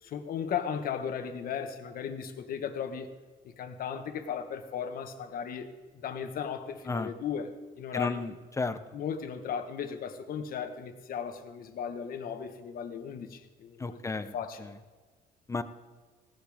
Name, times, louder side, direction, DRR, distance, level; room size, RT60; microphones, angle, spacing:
voice 1, 0.0-3.1 3.4-7.5 7.8-8.2 8.9-14.0 14.3-14.7, left 7 dB, 60° left, 7 dB, 1.4 m, -36 dB
voice 2, 7.9-8.8 13.8-14.3 14.6-14.7 15.5-15.6, left 3 dB, 15° left, 11 dB, 0.8 m, -32 dB
17.5 x 13.0 x 3.6 m, 1.4 s
cardioid pair, 110°, 17 cm